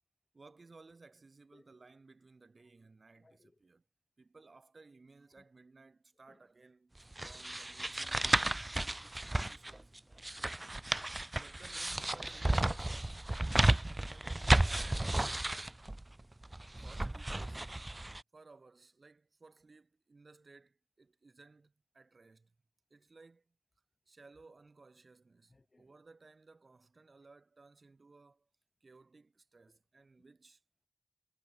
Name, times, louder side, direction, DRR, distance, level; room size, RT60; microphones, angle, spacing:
voice 1, 0.3-3.8 4.2-10.0 11.3-13.2 14.0-15.5 16.8-18.0 18.3-22.6 22.9-23.6 24.1-28.5 28.8-30.6, right 3 dB, 85° right, 2.3 m, -60 dB
voice 2, 3.2-3.6 5.4-5.5 6.3-6.4 9.3-11.4 16.7-16.8 25.5-25.9, left 2 dB, 65° left, 2.3 m, -68 dB
sound 1, 7.1-18.2, right 1 dB, 35° right, 0.3 m, -33 dB
wide cardioid pair, 40°, 0 cm